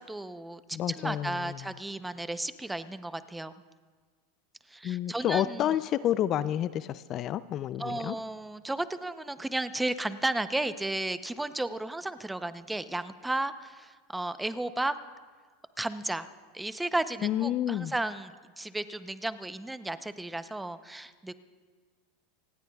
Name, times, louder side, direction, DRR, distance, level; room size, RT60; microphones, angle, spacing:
voice 1, 0.0-3.5 4.7-5.7 7.8-15.0 15.8-16.3 16.5-21.3, right 2 dB, 5° right, 12 dB, 0.7 m, -34 dB
voice 2, 0.7-1.6 4.8-8.2 17.2-17.9, left 11 dB, 40° left, 15 dB, 0.4 m, -29 dB
27.5 x 18.5 x 2.3 m, 1.5 s
supercardioid pair, 115°, 0 cm